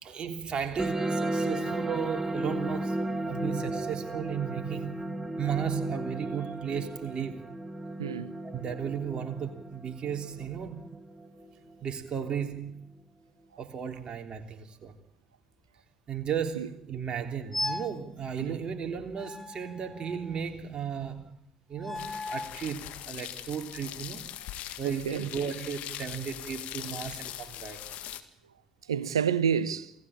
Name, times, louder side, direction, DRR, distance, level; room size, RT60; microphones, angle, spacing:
voice 1, 0.0-7.4 8.4-11.0 11.8-12.8 13.6-14.9 16.1-21.3 21.7-24.3 24.8-27.8, right 7 dB, 40° right, 3.3 m, -35 dB
sound 1, 0.8-11.8, right 1 dB, 15° right, 2.3 m, -34 dB
voice 2, 8.0-8.3 16.5-16.7 18.4-18.6 24.8-25.3 28.9-29.9, right 7 dB, 80° right, 1.1 m, -29 dB
sound 2, 17.5-18.0 19.2-20.4 21.8-22.6, left 2 dB, 5° left, 2.4 m, -36 dB
sound 3, 21.9-28.2, left 12 dB, 60° left, 1.9 m, -41 dB
28.0 x 18.0 x 8.9 m
figure-of-eight pair, 50°, 2 cm